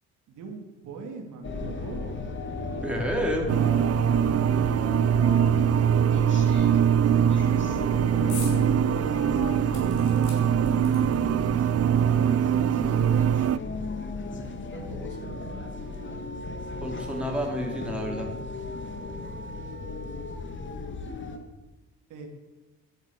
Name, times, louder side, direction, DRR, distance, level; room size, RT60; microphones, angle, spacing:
voice 1, 0.3-2.9 7.1-9.9 14.7-15.7 22.1-22.3, right 4 dB, 80° right, 2 dB, 3.1 m, -42 dB
sound 1, 1.4-21.4, left 3 dB, 40° left, 2.4 m, -35 dB
voice 2, 2.8-3.5 16.8-18.3, equal, 5° right, -1 dB, 4.0 m, -29 dB
sound 2, 3.5-13.6, right 9 dB, 50° right, 0.6 m, -22 dB
sound 3, 8.3-8.6 9.0-9.1 9.7-11.4 12.3-12.4 12.6-12.7, left 4 dB, 70° left, 5.8 m, -42 dB
12.0 x 11.5 x 8.5 m, 1.1 s
cardioid pair, 90°, 30 cm